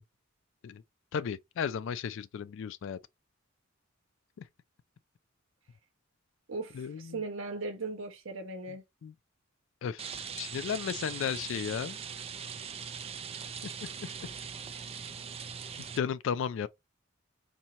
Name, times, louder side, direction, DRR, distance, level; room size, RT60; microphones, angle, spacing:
voice 1, 1.1-3.0 4.4-4.5 6.7-7.2 8.7-8.8 9.0-9.1 9.8-12.0 13.6-14.1 16.0-16.7, left 7 dB, 65° left, 0.3 m, -35 dB
voice 2, 6.5-8.8, right 3 dB, 70° right, 1.0 m, -38 dB
Rain, 10.0-16.0, right 7 dB, 30° right, 0.4 m, -41 dB
4.3 x 2.7 x 2.9 m
head